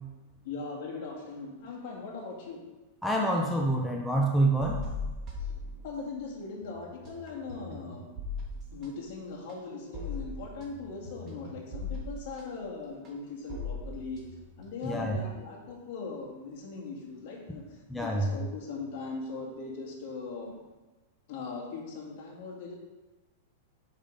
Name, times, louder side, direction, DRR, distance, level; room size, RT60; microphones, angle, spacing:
voice 1, 0.4-2.6 5.3-5.5 5.8-8.1 8.7-14.2 14.6-20.6 21.3-22.7, left 4 dB, 55° left, -1 dB, 1.9 m, -40 dB
voice 2, 3.0-4.8 14.8-15.2 17.9-18.3, right 1 dB, 5° left, -1 dB, 0.6 m, -27 dB
sound 1, 4.6-6.3 6.6-15.3, left 3 dB, 30° right, 1.5 m, -40 dB
5.5 x 5.4 x 5.0 m, 1.2 s
supercardioid pair, 145°, 0 cm